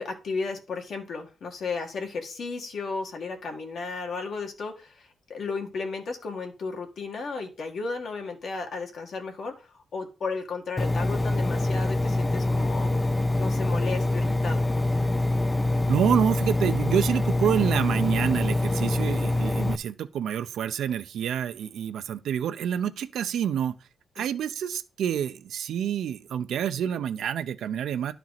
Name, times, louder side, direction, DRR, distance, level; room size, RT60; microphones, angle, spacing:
voice 1, 0.0-14.7 19.0-19.1 24.2-24.3, left 4 dB, 60° left, 1.8 m, -34 dB
Engine, 10.8-19.8, left 2 dB, 15° left, 0.4 m, -25 dB
voice 2, 15.9-23.8 24.2-28.1, right 9 dB, 85° right, 0.7 m, -27 dB
11.5 x 4.5 x 4.1 m
wide cardioid pair, 135°, 0 cm